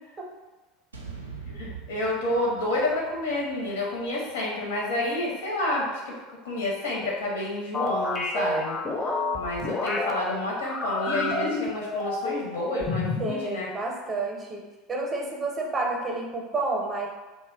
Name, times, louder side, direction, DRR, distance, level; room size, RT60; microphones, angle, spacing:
sound 1, 0.9-5.1, right 5 dB, 80° right, 0.3 m, -44 dB
voice 1, 1.5-6.2 6.4-8.8 9.3-13.7, left 1 dB, 65° left, -3 dB, 0.6 m, -29 dB
sound 2, 7.7-10.1 10.6-12.5 12.8-13.4, left 2 dB, 20° left, 0.4 m, -29 dB
voice 2, 13.2-14.6 14.9-17.1, right 2 dB, 25° right, -1 dB, 0.6 m, -30 dB
2.1 x 2.0 x 3.4 m, 1.2 s
figure-of-eight pair, 75°, 0 cm